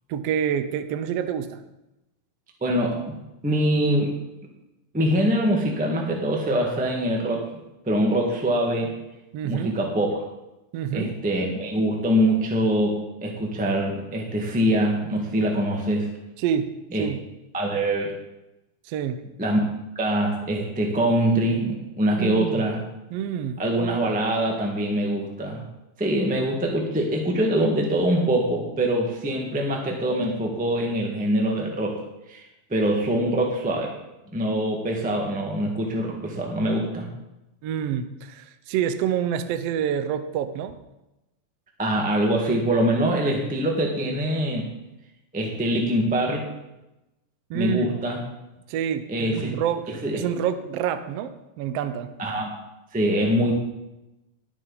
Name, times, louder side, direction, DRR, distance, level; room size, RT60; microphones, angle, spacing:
voice 1, 0.1-1.6 9.3-9.8 10.7-11.1 16.4-16.7 17.0-17.2 18.8-19.2 22.1-22.6 23.1-23.6 37.6-40.7 47.5-48.0 48.7-52.1, right 9 dB, 80° right, 10 dB, 1.4 m, -27 dB
voice 2, 2.6-3.1 3.4-4.1 4.9-7.4 7.8-8.9 9.4-10.1 10.9-16.1 16.9-17.1 17.5-18.1 19.4-19.6 19.9-22.8 23.6-25.6 26.0-32.0 32.3-32.4 32.7-33.9 34.3-37.1 41.8-44.6 45.3-46.4 47.5-48.2 49.1-49.5 50.0-50.2 52.2-52.5 52.9-53.5, right 1 dB, 5° right, 0 dB, 0.6 m, -24 dB
20.0 x 6.6 x 4.1 m, 0.95 s
omnidirectional pair, 3.7 m